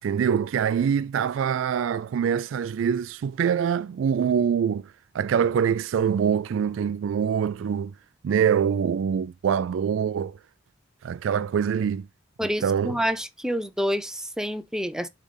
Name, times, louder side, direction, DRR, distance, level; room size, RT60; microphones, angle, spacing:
voice 1, 0.0-7.9 8.2-10.4 11.0-12.1 12.6-13.0, right 7 dB, 75° right, 0.3 m, -24 dB
voice 2, 12.4-15.1, equal, 5° right, 0.5 m, -28 dB
7.1 x 3.3 x 5.5 m
head